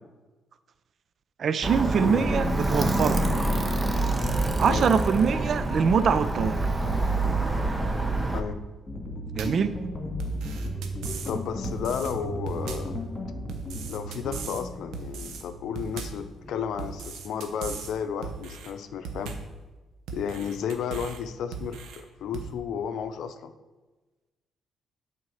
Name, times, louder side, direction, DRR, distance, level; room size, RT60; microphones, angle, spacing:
voice 1, 1.4-3.3 4.6-6.7 9.3-9.7, right 6 dB, 55° right, 12 dB, 0.4 m, -24 dB
Alarm, 1.6-8.4, right 2 dB, 20° right, 0.9 m, -26 dB
voice 2, 2.0-2.3 4.6-4.9 8.3-8.6 11.3-13.1 13.9-19.4 20.1-23.5, left 7 dB, 75° left, 9 dB, 0.6 m, -33 dB
sound 1, 8.9-18.3, equal, 25° left, 2.0 m, -36 dB
sound 2, 9.4-9.7 10.2-11.3 11.6-12.1 12.5-13.0 13.5-14.6 14.9-15.4 15.8-16.3 16.8-17.9 18.2-18.7 19.1-19.6 20.1-21.2 21.5-22.0 22.3-22.5, right 5 dB, 85° right, 0.9 m, -38 dB
8.2 x 4.2 x 6.3 m, 1.2 s
cardioid pair, 90°, 0 cm